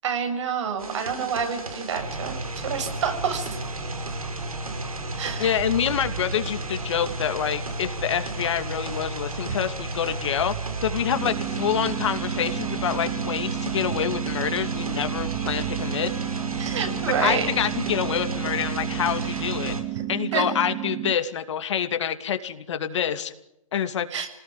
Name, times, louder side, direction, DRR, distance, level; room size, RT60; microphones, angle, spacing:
voice 1, 0.0-3.6 5.2-5.5 9.5-9.6 16.6-17.5 19.2-19.4 20.0-20.1 20.3-20.5 24.1-24.3, right 6 dB, 55° right, 5 dB, 7.3 m, -28 dB
sound 1, 0.8-19.8, right 2 dB, 90° right, 5.8 m, -32 dB
voice 2, 5.4-10.5 10.8-16.1 17.2-19.7 20.1-23.3 23.7-24.1, left 9 dB, 55° left, 9 dB, 2.6 m, -27 dB
sound 2, 11.1-21.1, right 17 dB, 25° right, 1.1 m, -32 dB
27.5 x 19.0 x 9.0 m, 0.87 s
hypercardioid pair, 140°, 18 cm